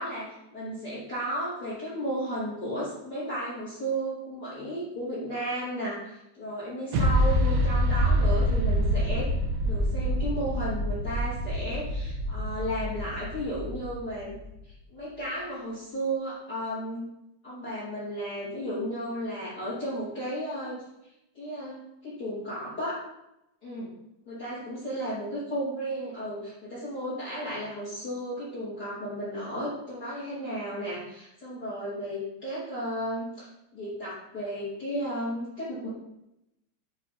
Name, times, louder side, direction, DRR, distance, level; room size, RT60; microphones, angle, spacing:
voice 1, 0.0-9.3 9.6-14.3 14.9-17.1 17.4-20.8 21.3-23.0 23.6-23.9 24.2-35.9, equal, 30° left, -10 dB, 3.4 m, -34 dB
sound 1, 6.9-14.5, equal, 65° right, 2.0 m, -26 dB
8.9 x 4.8 x 4.3 m, 0.86 s
omnidirectional pair, 3.6 m